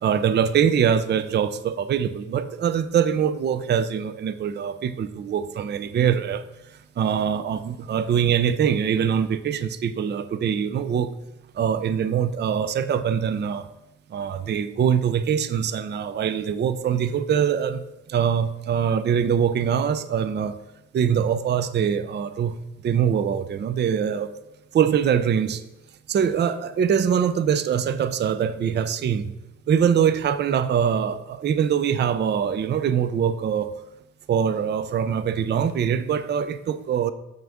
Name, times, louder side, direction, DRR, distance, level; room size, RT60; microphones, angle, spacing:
voice 1, 0.0-6.4 7.0-11.1 11.6-13.7 14.1-17.8 18.1-20.5 20.9-22.5 22.8-24.3 24.7-25.6 26.1-29.3 29.7-33.7 34.3-37.1, right 8 dB, 35° right, 0.4 m, -23 dB
7.1 x 6.0 x 3.5 m
cardioid pair, 90°, 30 cm